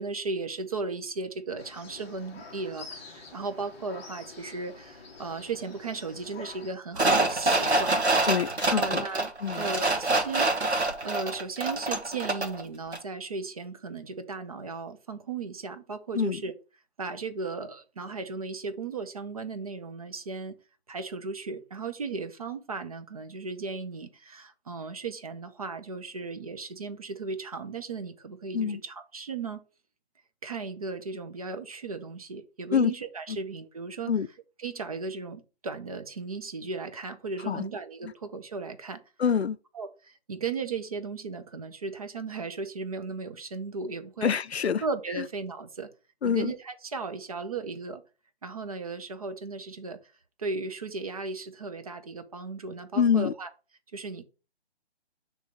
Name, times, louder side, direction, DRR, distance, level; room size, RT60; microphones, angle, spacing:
voice 1, 0.0-8.0 8.7-16.5 17.0-20.6 20.9-29.6 30.4-34.1 34.6-39.0 39.7-44.4 44.8-45.9 46.2-48.0 48.4-50.0 50.4-53.5 53.9-54.2, right 4 dB, 35° right, 0.6 m, -36 dB
sound 1, 1.6-6.7, left 4 dB, 15° left, 0.6 m, -47 dB
sound 2, 7.0-12.6 12.9-13.0, right 2 dB, 80° right, 1.3 m, -26 dB
voice 2, 8.3-9.0 9.4-9.7 16.1-16.4 28.5-28.8 32.7-32.9 34.1-34.3 37.5-37.6 38.0-38.1 39.2-39.6 44.2-44.8 46.2-46.5 53.0-53.3, left 7 dB, 75° left, 0.5 m, -25 dB
7.4 x 3.2 x 5.1 m
figure-of-eight pair, 140°, 32 cm